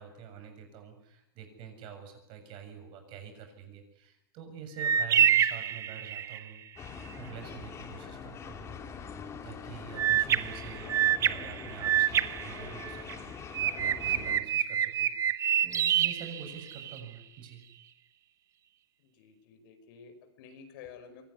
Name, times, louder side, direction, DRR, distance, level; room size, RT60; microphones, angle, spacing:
voice 1, 0.0-6.6 7.2-8.7 9.4-15.4 15.6-17.6, right 7 dB, 40° right, 6 dB, 7.1 m, -46 dB
sound 1, 4.8-6.5 10.0-13.1 13.5-17.0, right 10 dB, 25° right, 1.0 m, -27 dB
sound 2, 6.8-14.4, left 6 dB, 20° left, 3.1 m, -43 dB
voice 2, 19.0-21.3, left 6 dB, 55° left, 8 dB, 5.4 m, -51 dB
24.5 x 19.0 x 9.8 m, 0.82 s
supercardioid pair, 145°, 13 cm